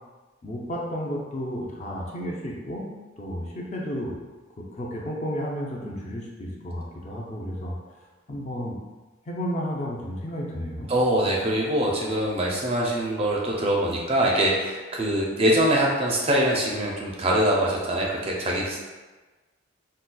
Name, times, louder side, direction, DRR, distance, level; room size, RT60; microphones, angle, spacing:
voice 1, 0.4-2.9 3.2-4.2 4.6-7.7 8.3-8.8 9.3-10.9, equal, 35° left, -2 dB, 0.4 m, -32 dB
voice 2, 10.9-18.8, right 1 dB, 30° right, -3 dB, 0.4 m, -23 dB
3.9 x 2.3 x 2.2 m, 1.3 s
head